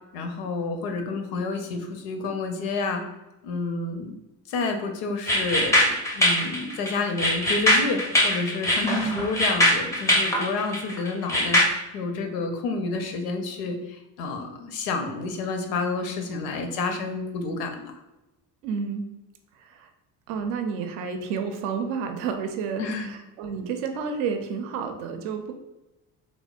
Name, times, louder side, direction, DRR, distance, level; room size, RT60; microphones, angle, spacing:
voice 1, 0.1-3.0 3.4-4.2 4.5-17.9 22.8-23.1, left 3 dB, 70° left, 5 dB, 0.6 m, -29 dB
sound 1, 5.3-11.6, left 1 dB, 5° left, 0.4 m, -22 dB
voice 2, 8.9-9.3 18.6-19.1 19.6-19.9 20.3-25.5, right 5 dB, 65° right, 6 dB, 0.5 m, -30 dB
3.4 x 2.1 x 2.2 m, 1.0 s
hypercardioid pair, 50°, 50 cm